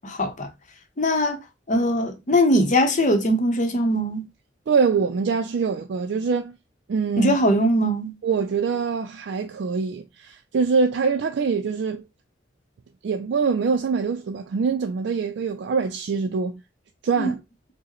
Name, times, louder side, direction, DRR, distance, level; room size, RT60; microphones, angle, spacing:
voice 1, 0.0-0.5 1.0-1.4 1.7-4.3 7.2-8.1 17.2-17.3, equal, 40° left, 0.7 m, -21 dB
voice 2, 4.7-6.6 6.9-7.4 8.2-12.0 13.0-16.6 17.0-17.4, right 5 dB, 70° right, 0.4 m, -24 dB
4.7 x 2.1 x 3.0 m
head